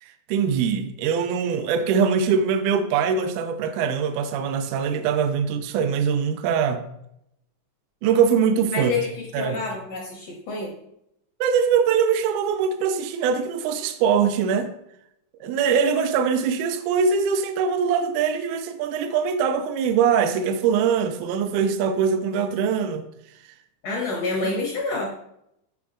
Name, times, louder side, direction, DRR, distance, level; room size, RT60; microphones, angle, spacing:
voice 1, 0.0-6.9 8.0-8.9 9.3-9.6 11.4-14.7 15.4-23.1, right 6 dB, 85° right, 1.8 m, -22 dB
voice 2, 8.7-10.7 23.8-25.1, left 3 dB, 75° left, 1.4 m, -28 dB
8.1 x 4.9 x 2.5 m
omnidirectional pair, 4.0 m